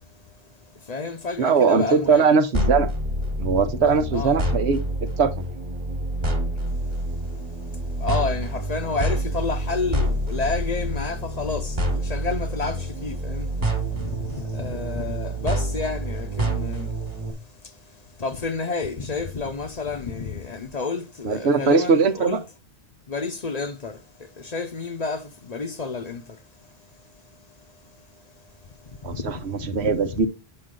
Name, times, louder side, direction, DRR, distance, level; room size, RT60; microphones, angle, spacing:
voice 1, 0.9-2.3 3.6-4.4 8.0-13.5 13.9-16.9 18.2-22.4 23.1-24.0 24.4-26.2 29.6-30.3, left 4 dB, 45° left, 0.7 m, -30 dB
voice 2, 1.4-2.9 3.4-4.8 5.2-5.3 21.2-22.4 29.0-30.3, right 5 dB, 80° right, 1.2 m, -20 dB
sound 1, 2.5-17.3, right 1 dB, 40° right, 1.5 m, -27 dB
7.8 x 5.6 x 3.7 m
omnidirectional pair, 1.1 m